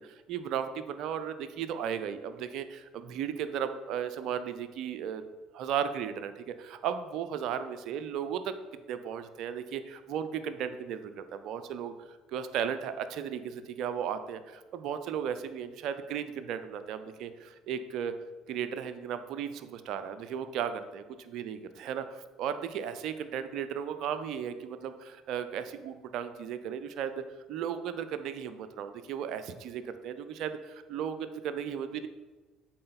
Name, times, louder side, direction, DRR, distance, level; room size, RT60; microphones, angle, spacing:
voice 1, 0.0-5.2 5.5-8.5 8.9-11.9 12.3-18.1 18.5-27.2 27.5-32.1, right 8 dB, 60° right, 10 dB, 0.5 m, -35 dB
7.6 x 4.3 x 4.0 m, 1.2 s
hypercardioid pair, 60°, 0 cm